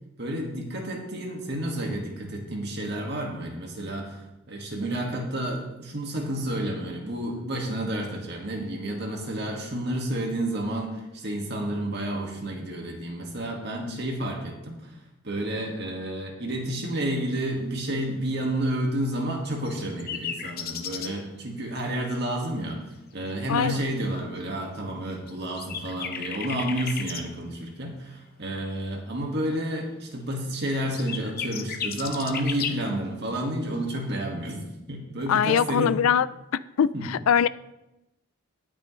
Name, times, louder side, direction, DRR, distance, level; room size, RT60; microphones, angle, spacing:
voice 1, 0.2-14.9 15.2-22.8 23.1-36.0 36.9-37.1, right 1 dB, 50° right, 2.0 m, -30 dB
sound 1, 19.6-21.1 25.3-25.4 25.6-27.2 30.7-32.8, left 7 dB, 45° left, 0.8 m, -34 dB
voice 2, 23.5-23.8 35.3-36.3 36.8-37.5, left 8 dB, 85° left, 0.4 m, -22 dB
19.0 x 6.4 x 3.3 m
head